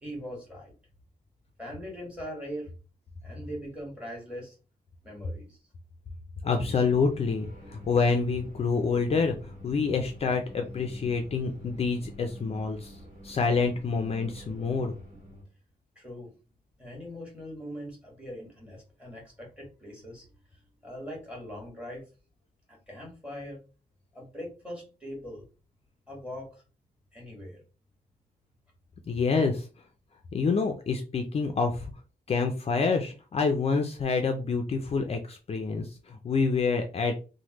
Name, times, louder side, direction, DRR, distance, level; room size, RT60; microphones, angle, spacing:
voice 1, 0.0-0.7 1.6-2.7 3.2-4.6 5.0-5.6 15.9-16.3 16.8-20.3 20.5-22.1 22.7-23.6 24.1-25.4 26.1-26.6 27.1-27.6, equal, 5° right, -2 dB, 1.4 m, -41 dB
voice 2, 6.4-13.0 13.2-14.9 29.1-29.7 30.3-31.9 32.3-37.2, left 4 dB, 40° left, 4 dB, 0.4 m, -27 dB
sound 1, 6.6-15.4, equal, 55° right, 1.5 m, -47 dB
3.2 x 2.1 x 2.9 m, 0.33 s
wide cardioid pair, 145°, 16 cm